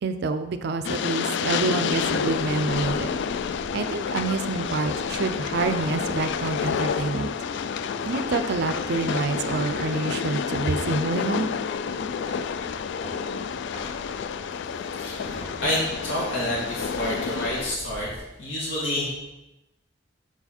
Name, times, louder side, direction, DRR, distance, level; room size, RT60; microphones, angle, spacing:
voice 1, 0.0-3.1 3.7-7.3 8.1-11.5, right 3 dB, 60° right, 10 dB, 0.4 m, -27 dB
Train, 0.8-17.8, left 6 dB, 65° left, 0.3 m, -29 dB
sound 1, 1.9-18.2, equal, 45° left, 1.9 m, -43 dB
voice 2, 14.9-15.3 15.6-18.1 18.4-19.2, left 1 dB, 85° left, -6 dB, 1.7 m, -28 dB
7.1 x 4.7 x 4.3 m, 0.98 s
head